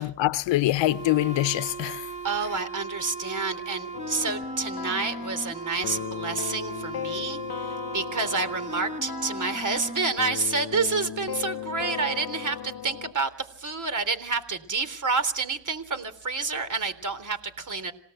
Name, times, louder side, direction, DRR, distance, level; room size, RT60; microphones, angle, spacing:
voice 1, 0.0-2.1, left 16 dB, 85° left, 0.9 m, -24 dB
sound 1, 0.8-10.1, right 3 dB, 15° right, 1.6 m, -37 dB
voice 2, 2.2-17.9, right 4 dB, 45° right, 3.7 m, -29 dB
sound 2, 3.9-13.1, left 10 dB, 55° left, 1.1 m, -37 dB
27.0 x 17.5 x 7.9 m
cardioid pair, 65°, 43 cm